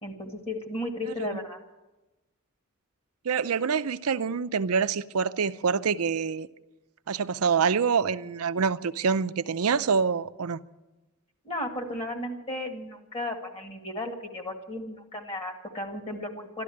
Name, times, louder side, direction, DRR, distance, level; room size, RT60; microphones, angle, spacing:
voice 1, 0.0-1.6 11.4-16.6, left 1 dB, 25° left, 1.9 m, -35 dB
voice 2, 3.2-6.5 7.1-10.6, right 6 dB, 90° right, 0.6 m, -26 dB
13.5 x 12.5 x 8.6 m
head